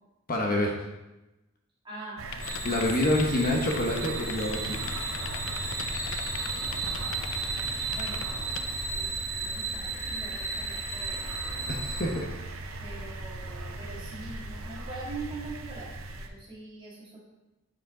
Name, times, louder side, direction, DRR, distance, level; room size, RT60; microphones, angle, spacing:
voice 1, 0.3-0.8 2.6-4.8 11.7-12.3, left 1 dB, 45° left, 0 dB, 0.9 m, -27 dB
voice 2, 1.8-2.2 2.7-2.8 7.9-8.5 8.9-9.1 9.4-11.2 12.8-17.2, right 3 dB, 25° right, -5 dB, 1.8 m, -43 dB
sound 1, 2.2-16.3, right 2 dB, 80° right, 0.7 m, -38 dB
sound 2, 2.3-8.6, left 9 dB, 60° left, 0.4 m, -40 dB
sound 3, 2.4-12.0, right 3 dB, 90° left, 2.0 m, -35 dB
7.8 x 4.8 x 3.8 m, 1.0 s
head